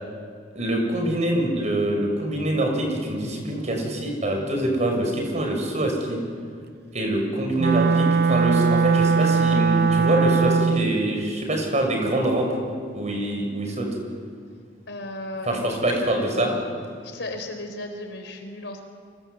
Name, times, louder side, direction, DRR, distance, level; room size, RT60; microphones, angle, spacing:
voice 1, 0.5-6.2 6.9-12.5 12.9-13.9 15.4-16.5, right 1 dB, 40° right, 2 dB, 6.3 m, -25 dB
Wind instrument woodwind instrument, 7.6-11.0, right 5 dB, 60° right, 0.6 m, -20 dB
voice 2, 14.9-16.7 17.0-18.8, left 2 dB, 70° left, 5 dB, 4.6 m, -35 dB
28.5 x 25.0 x 8.3 m, 2.2 s
head